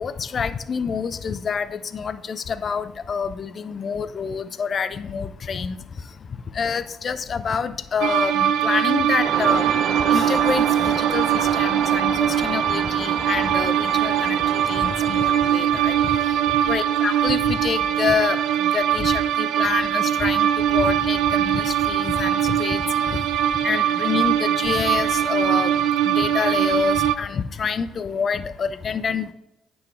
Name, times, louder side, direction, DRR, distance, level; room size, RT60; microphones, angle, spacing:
voice 1, 0.0-5.8 6.6-9.6 10.1-11.3 11.6-15.9 16.7-18.4 18.7-20.5 20.7-22.8 23.6-25.7 26.1-29.3, left 6 dB, 45° left, 13 dB, 0.7 m, -27 dB
sound 1, 8.0-27.1, right 10 dB, 70° right, 0.5 m, -21 dB
sound 2, 9.2-16.9, right 5 dB, 45° right, 0.9 m, -31 dB
9.6 x 6.3 x 3.2 m, 0.91 s
hypercardioid pair, 50°, 0 cm